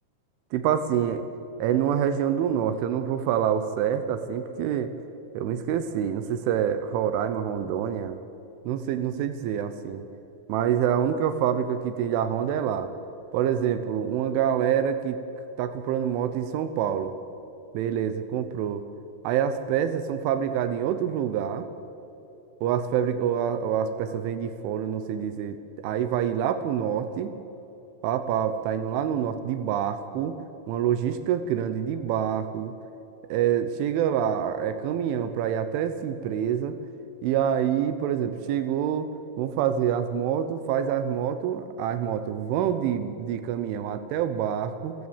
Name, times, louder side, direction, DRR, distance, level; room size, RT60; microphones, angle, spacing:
voice 1, 0.5-1.3 1.6-4.9 5.3-8.2 8.7-10.0 10.5-12.9 13.3-15.2 15.6-17.1 17.7-18.8 19.2-21.7 22.6-25.6 25.8-27.3 28.0-30.3 30.7-32.7 33.3-36.8 37.2-39.1 39.4-45.0, right 9 dB, 80° right, 10 dB, 3.3 m, -26 dB
28.0 x 16.0 x 7.3 m, 3.0 s
omnidirectional pair, 5.6 m